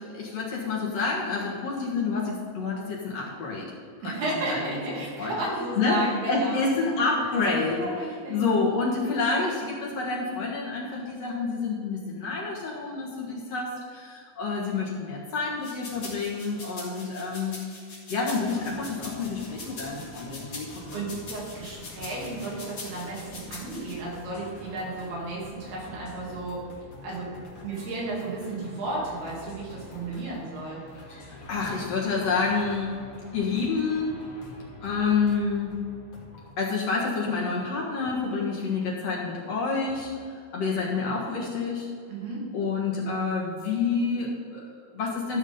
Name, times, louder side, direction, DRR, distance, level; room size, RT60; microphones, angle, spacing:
voice 1, 0.0-3.7 4.0-4.2 4.5-5.4 5.8-7.9 8.3-17.6 18.1-21.0 31.1-33.1 33.3-36.0 36.6-41.9 42.5-45.4, left 4 dB, 55° left, -4 dB, 2.1 m, -28 dB
voice 2, 4.0-6.6 7.0-7.1 7.7-8.4 20.5-26.7 27.0-27.3 27.6-30.8 42.1-42.4, right 2 dB, 75° right, -5 dB, 4.4 m, -33 dB
sound 1, 15.6-23.9, left 3 dB, 30° left, 2.6 m, -42 dB
sound 2, 18.3-36.5, left 2 dB, 75° left, 1.0 m, -47 dB
13.5 x 6.4 x 5.3 m, 2.2 s
omnidirectional pair, 4.6 m